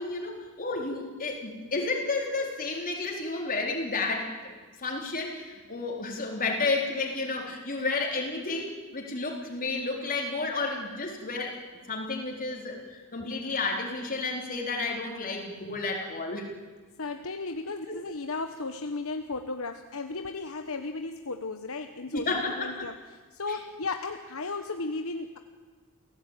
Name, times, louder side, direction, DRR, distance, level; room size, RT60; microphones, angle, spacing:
voice 1, 0.0-11.6 11.9-16.5 17.9-18.0 22.1-22.9 23.5-23.6, left 3 dB, 40° left, 1 dB, 4.2 m, -31 dB
voice 2, 17.0-22.9 23.3-25.4, left 3 dB, 65° left, 6 dB, 1.2 m, -35 dB
29.0 x 17.0 x 9.2 m, 1.4 s
head